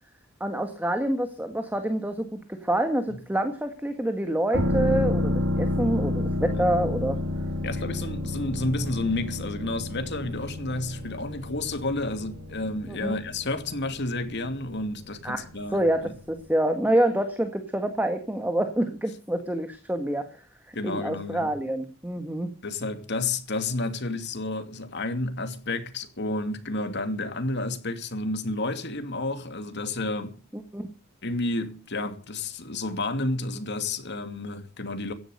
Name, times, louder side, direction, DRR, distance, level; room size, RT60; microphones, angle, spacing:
voice 1, 0.4-7.2 12.9-13.2 15.2-15.5 15.7-20.4 20.8-22.5 30.7-30.9, right 1 dB, 10° right, 1.7 m, -27 dB
sound 1, 4.5-16.1 16.4-16.5, left 1 dB, 60° right, 3.0 m, -30 dB
voice 2, 7.6-16.1 20.7-21.5 22.6-30.4 31.2-35.1, left 2 dB, 55° left, 2.6 m, -31 dB
15.5 x 11.0 x 6.6 m
head